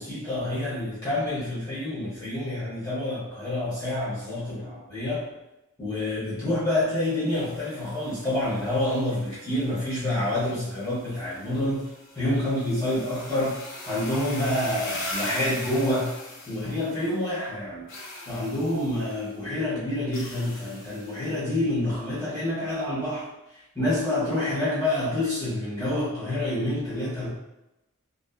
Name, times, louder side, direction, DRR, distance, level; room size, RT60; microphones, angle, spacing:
voice 1, 0.0-5.3 5.8-11.9 12.1-13.6 13.9-16.2 16.5-17.9 18.3-23.3 23.7-27.3, left 1 dB, 15° left, -11 dB, 0.9 m, -27 dB
sound 1, 7.2-17.3 17.9-19.3 20.1-21.3, left 2 dB, 65° left, 0.6 m, -41 dB
2.5 x 2.2 x 2.4 m, 0.93 s
head